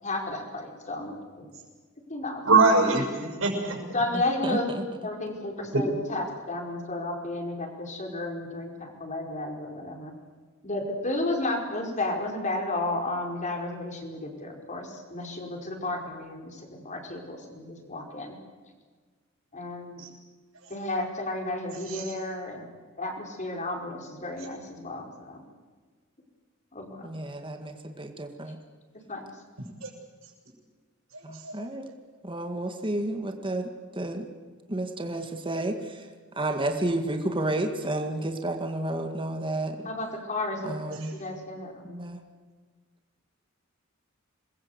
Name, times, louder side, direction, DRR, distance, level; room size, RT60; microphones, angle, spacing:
voice 1, 0.0-1.5 2.1-2.4 3.9-4.7 5.0-10.1 10.6-18.4 19.5-20.1 20.7-22.7 22.9-25.4 26.7-27.1 28.5-28.6 29.1-29.3 39.8-40.8 41.1-42.0, left 2 dB, 35° left, 2 dB, 5.0 m, -32 dB
voice 2, 2.5-3.0 3.4-3.8 21.9-22.0 29.8-29.9 31.4-31.5, right 3 dB, 75° right, 2 dB, 7.0 m, -21 dB
voice 3, 4.4-4.8 27.0-28.6 31.2-31.9 32.2-34.3 34.7-36.1 36.4-39.9 40.6-41.1 41.9-42.2, right 1 dB, 25° right, 5 dB, 2.0 m, -31 dB
27.0 x 21.5 x 8.1 m, 1.5 s
head